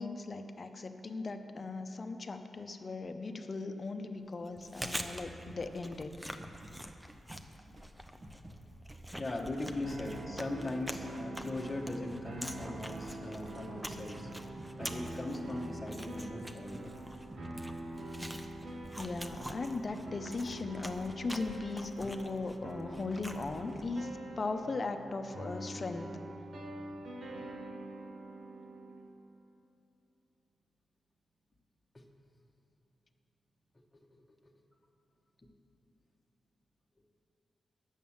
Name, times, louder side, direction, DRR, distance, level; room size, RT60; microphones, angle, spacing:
voice 1, 0.0-6.1 19.0-26.1, left 3 dB, 45° left, 7 dB, 0.7 m, -38 dB
Chewing mastication, 4.5-24.0, equal, 5° right, 0.7 m, -46 dB
sound 1, 4.8-7.5 7.8-10.5 10.7-14.1 14.3-14.8 15.0-17.7 18.0-18.4 18.7-19.3, right 1 dB, 40° right, 1.1 m, -53 dB
voice 2, 9.2-14.3 14.8-16.9 31.9-32.0 34.1-34.2, left 2 dB, 25° left, -1 dB, 1.1 m, -39 dB
sound 2, 9.8-29.1, right 1 dB, 85° right, 1.2 m, -45 dB
9.1 x 7.3 x 7.1 m, 2.9 s
cardioid pair, 70°, 0 cm